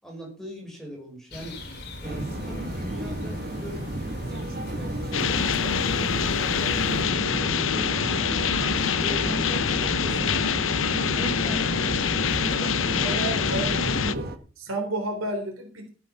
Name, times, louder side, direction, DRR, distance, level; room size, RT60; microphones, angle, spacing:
voice 1, 0.0-3.9 4.3-5.8 6.1-8.3 8.6-10.4 11.1-12.0 12.5-13.4, right 1 dB, ahead, -1 dB, 5.5 m, -40 dB
sound 1, 1.3-7.0, left 1 dB, 50° left, 3.9 m, -40 dB
sound 2, 2.0-14.4, right 1 dB, 45° right, 1.4 m, -33 dB
sound 3, 5.1-14.1, left 6 dB, 65° left, 0.8 m, -25 dB
voice 2, 13.0-14.3 14.6-15.9, right 2 dB, 75° right, 2 dB, 3.7 m, -31 dB
14.5 x 9.2 x 5.7 m, 0.39 s
head